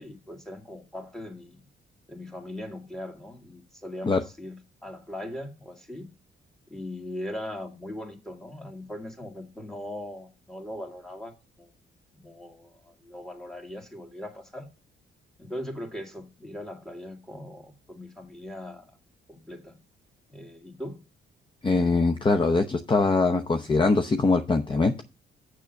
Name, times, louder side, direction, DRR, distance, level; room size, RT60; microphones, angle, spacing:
voice 1, 0.0-1.6 2.1-6.1 6.7-11.3 11.6-11.7 12.1-14.7 15.4-19.0 19.3-19.8 20.3-21.0, left 1 dB, ahead, 2.3 m, -40 dB
voice 2, 21.6-25.0, left 3 dB, 25° left, 0.8 m, -22 dB
6.8 x 6.4 x 6.4 m
cardioid pair, 90°, 20 cm